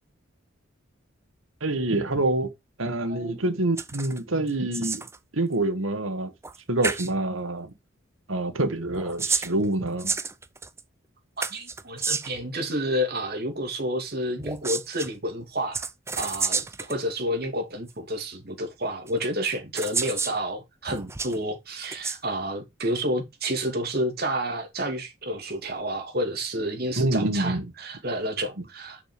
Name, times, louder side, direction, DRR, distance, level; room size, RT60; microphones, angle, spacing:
voice 1, 1.6-2.5 2.8-5.0 5.3-6.3 6.7-7.7 8.3-10.2 27.0-27.7, right 2 dB, 80° right, 1.6 m, -26 dB
voice 2, 3.0-3.4 11.4-15.8 16.1-29.0, equal, 50° right, 2.6 m, -30 dB
sound 1, 3.8-4.2 4.5-5.2 6.4-6.6 6.8-7.1 8.9-10.8 11.4-12.4 14.4-15.1 15.7-17.0 17.9-18.0 19.1-19.2 19.8-20.4 20.9-21.4 21.8-22.2, right 4 dB, 15° right, 0.6 m, -30 dB
6.8 x 6.0 x 4.6 m
head